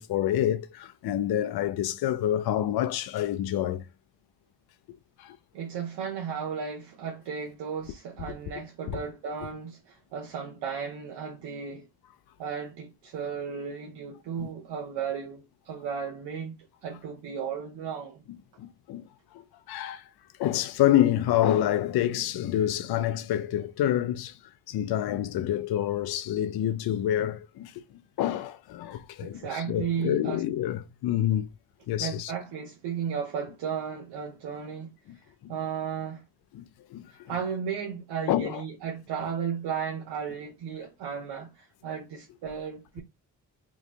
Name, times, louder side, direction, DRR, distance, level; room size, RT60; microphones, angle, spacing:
voice 1, 0.0-3.9 5.2-5.4 8.9-9.0 14.4-14.5 18.6-19.4 19.7-20.1 20.4-24.4 24.7-27.8 28.2-31.5 31.9-32.3 35.1-35.2 35.4-35.5 36.5-36.6 36.9-37.1 38.3-38.6, left 12 dB, 70° left, 0.5 m, -27 dB
voice 2, 5.5-11.8 12.4-18.2 29.2-30.4 32.0-34.9 35.5-36.2 37.1-43.0, right 7 dB, 90° right, 0.9 m, -34 dB
3.0 x 2.5 x 3.4 m
cardioid pair, 60°, 40 cm